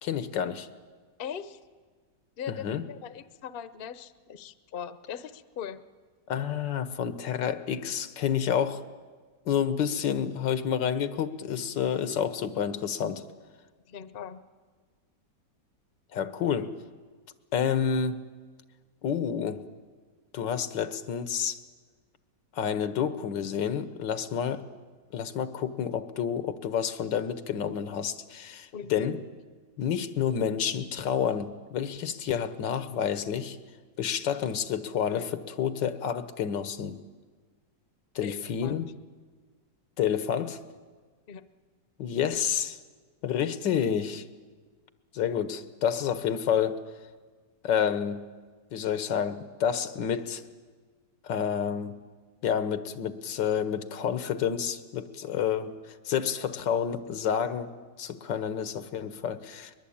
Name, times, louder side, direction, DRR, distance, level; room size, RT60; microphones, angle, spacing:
voice 1, 0.0-0.7 2.5-2.8 6.3-8.8 9.5-13.2 16.1-16.7 17.5-18.2 19.0-19.6 20.3-21.6 22.5-24.6 25.1-29.2 29.8-33.6 34.0-37.0 38.1-38.9 40.0-40.6 42.0-42.8 43.2-44.2 45.1-46.8 47.6-48.2 48.7-50.4 51.2-52.0 52.4-57.7 58.0-59.7, left 8 dB, 90° left, 11 dB, 1.7 m, -29 dB
voice 2, 1.2-1.6 2.4-5.8 13.9-14.4 28.7-29.1 35.1-35.2 38.2-38.8 41.3-41.4, left 8 dB, 45° left, 12 dB, 0.8 m, -40 dB
22.0 x 21.5 x 8.6 m, 1.5 s
omnidirectional pair, 1.9 m